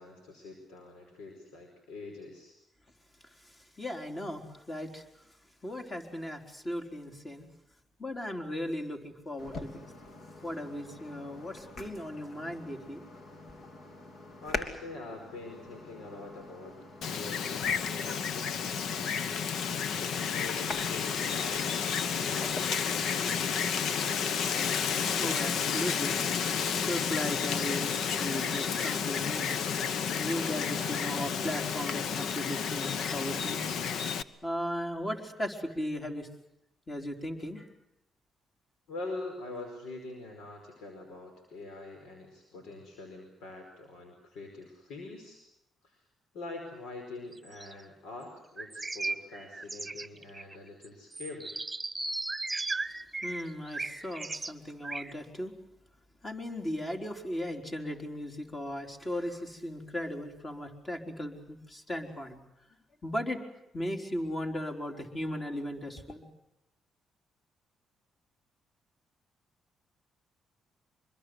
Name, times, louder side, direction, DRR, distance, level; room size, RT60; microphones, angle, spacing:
voice 1, 0.0-2.5 14.4-19.3 20.0-22.8 23.2-23.7 38.9-45.4 45.8-46.0 46.3-51.5, left 2 dB, 85° left, 4 dB, 4.9 m, -44 dB
voice 2, 3.3-5.3 5.6-7.5 8.0-9.9 10.4-13.0 25.2-26.2 26.6-29.6 30.2-33.8 34.4-36.3 36.9-37.7 53.2-55.5 56.2-62.4 63.0-63.4 63.7-66.3, equal, 25° left, 3 dB, 4.2 m, -37 dB
sound 1, 9.4-22.6, left 2 dB, 55° left, 2.9 m, -45 dB
Wind, 17.0-34.2, left 7 dB, 70° left, 1.0 m, -31 dB
sound 2, 47.3-47.7 48.6-50.6 50.8-50.9 51.1-54.5 54.8-55.1, right 3 dB, 15° right, 1.5 m, -36 dB
25.0 x 21.5 x 8.0 m, 0.87 s
cardioid pair, 90°, 0 cm